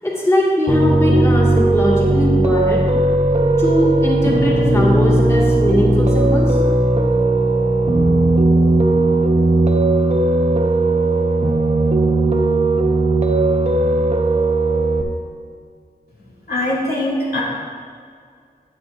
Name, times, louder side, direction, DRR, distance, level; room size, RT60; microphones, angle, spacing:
voice 1, 0.0-2.9 3.6-6.6, left 1 dB, 15° left, -5 dB, 2.1 m, -20 dB
Piano, 0.7-15.0, right 2 dB, 40° right, 1.0 m, -16 dB
voice 2, 16.5-17.4, left 1 dB, 80° left, -6 dB, 2.4 m, -21 dB
13.0 x 8.2 x 2.7 m, 2.1 s
wide cardioid pair, 55°, 16 cm